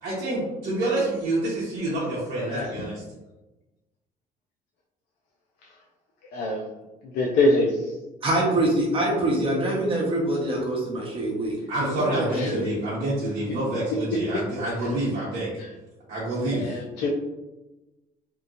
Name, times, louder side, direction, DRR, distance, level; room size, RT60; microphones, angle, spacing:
voice 1, 0.0-2.9 11.7-15.5 16.1-16.7, right 1 dB, 55° right, -8 dB, 0.9 m, -27 dB
voice 2, 6.3-6.7 7.1-7.9 12.3-12.5 15.6-15.7 16.5-17.1, left 2 dB, 80° left, -2 dB, 0.5 m, -24 dB
voice 3, 8.2-12.7 16.4-16.6, right 1 dB, 30° right, -3 dB, 1.0 m, -25 dB
2.8 x 2.6 x 2.5 m, 1.1 s
cardioid pair, 110°, 17 cm